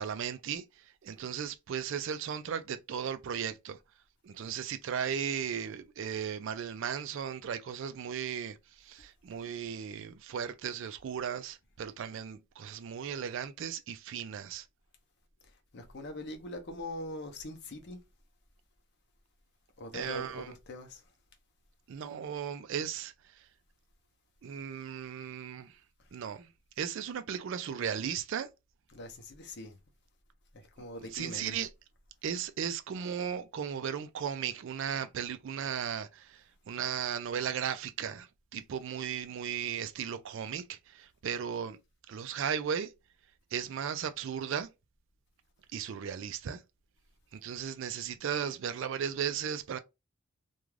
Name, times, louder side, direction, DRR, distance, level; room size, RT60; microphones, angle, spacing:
voice 1, 0.0-3.8 4.2-14.7 19.9-20.5 21.9-23.5 24.4-25.8 26.1-26.5 26.8-28.5 31.1-31.7 32.2-41.8 42.1-42.9 43.5-44.7 45.7-46.6 47.3-49.8, right 8 dB, 55° right, 0.3 m, -36 dB
voice 2, 15.4-18.0 19.8-21.0 26.0-26.1 28.9-29.8 30.5-31.6, left 1 dB, 50° left, 0.6 m, -42 dB
2.4 x 2.2 x 3.1 m
head